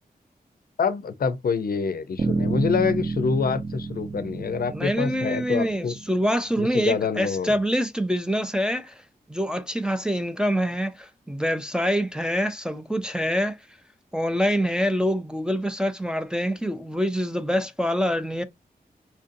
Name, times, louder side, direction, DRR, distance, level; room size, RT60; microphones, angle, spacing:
voice 1, 0.8-6.0 6.6-7.6, left 5 dB, 70° left, 0.5 m, -26 dB
Bass guitar, 2.2-6.6, right 4 dB, 50° right, 0.7 m, -30 dB
voice 2, 4.7-8.9 9.3-13.6 14.1-18.4, equal, 5° right, 0.4 m, -25 dB
4.4 x 2.6 x 2.5 m
wide cardioid pair, 135°, 16 cm